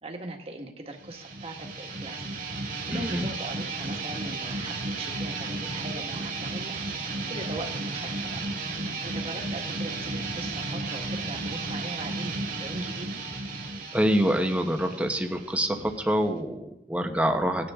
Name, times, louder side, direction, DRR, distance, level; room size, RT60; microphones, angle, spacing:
voice 1, 0.0-2.2 2.9-6.8 7.3-8.4 9.0-12.3 12.6-13.2, right 2 dB, 35° right, 3 dB, 1.7 m, -40 dB
sound 1, 1.0-16.4, right 3 dB, 50° right, 2.0 m, -34 dB
voice 2, 2.9-3.3 13.9-17.7, equal, 10° right, 4 dB, 1.1 m, -26 dB
18.0 x 10.0 x 3.7 m, 0.84 s
head